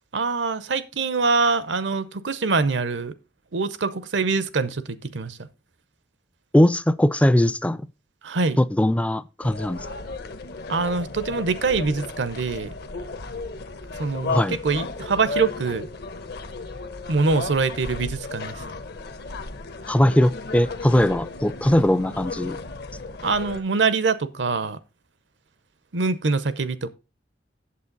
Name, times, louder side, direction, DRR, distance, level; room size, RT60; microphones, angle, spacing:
voice 1, 0.1-3.1 3.5-5.4 8.2-8.6 10.7-12.7 14.0-15.9 17.1-18.6 23.2-24.8 25.9-26.9, right 4 dB, 75° right, 0.7 m, -24 dB
voice 2, 6.5-7.8 8.6-9.9 14.3-14.6 19.9-22.6, left 1 dB, 5° left, 0.3 m, -20 dB
sound 1, 9.4-23.6, left 3 dB, 60° left, 0.9 m, -34 dB
8.5 x 7.6 x 3.9 m
head